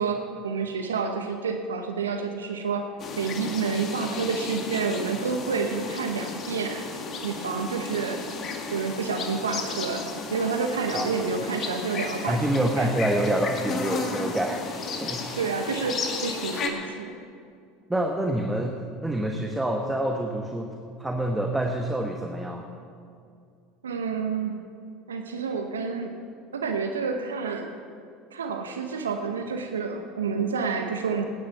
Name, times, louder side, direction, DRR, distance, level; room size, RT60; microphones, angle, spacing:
voice 1, 0.0-2.9 3.2-6.9 7.2-8.2 8.7-12.4 12.8-12.9 15.3-17.1 23.8-24.6 25.1-26.1 26.5-27.8 28.3-31.3, right 5 dB, 80° right, 5 dB, 0.9 m, -29 dB
sound 1, 3.0-16.7, left 4 dB, 40° left, 2.0 m, -34 dB
voice 2, 12.3-14.6 15.0-15.2 17.9-20.7 21.0-22.6, right 1 dB, 10° right, 3 dB, 1.2 m, -27 dB
17.0 x 10.5 x 5.8 m, 2.4 s
hypercardioid pair, 75°, 0 cm